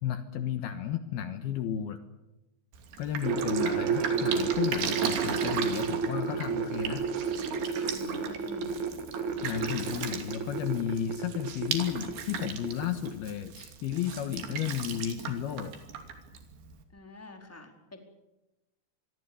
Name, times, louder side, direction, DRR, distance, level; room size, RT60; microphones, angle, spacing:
voice 1, 0.0-2.0 3.0-7.1 9.4-15.8, left 10 dB, 65° left, 9 dB, 3.0 m, -33 dB
Drip, 2.7-16.8, right 7 dB, 70° right, 4.9 m, -38 dB
sound 1, 3.2-12.1 12.4-13.1, right 5 dB, 50° right, 3.1 m, -31 dB
voice 2, 7.9-8.8 16.9-18.0, left 2 dB, 5° left, 4 dB, 3.5 m, -46 dB
27.0 x 22.5 x 7.1 m, 0.98 s
omnidirectional pair, 5.1 m